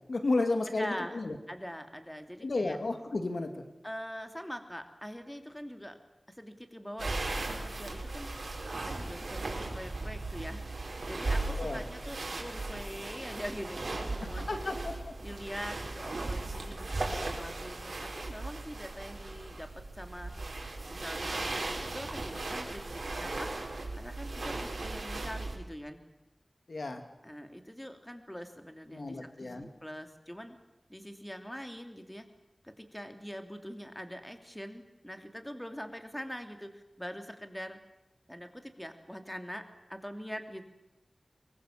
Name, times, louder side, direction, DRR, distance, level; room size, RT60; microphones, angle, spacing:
voice 1, 0.1-1.4 2.4-3.6 11.6-11.8 14.4-15.1 26.7-27.0 28.9-29.7, left 2 dB, 85° left, 6 dB, 2.5 m, -32 dB
voice 2, 0.6-2.8 3.8-6.0 6.3-8.3 8.7-10.6 11.1-14.8 15.2-20.3 20.9-23.5 23.9-26.0 27.2-30.6 30.9-32.2 32.6-37.8 38.3-40.6, equal, 10° left, 6 dB, 2.7 m, -43 dB
sound 1, 7.0-25.6, right 2 dB, 75° right, 4.8 m, -37 dB
23.5 x 23.0 x 7.4 m, 0.93 s
wide cardioid pair, 60°, 0 cm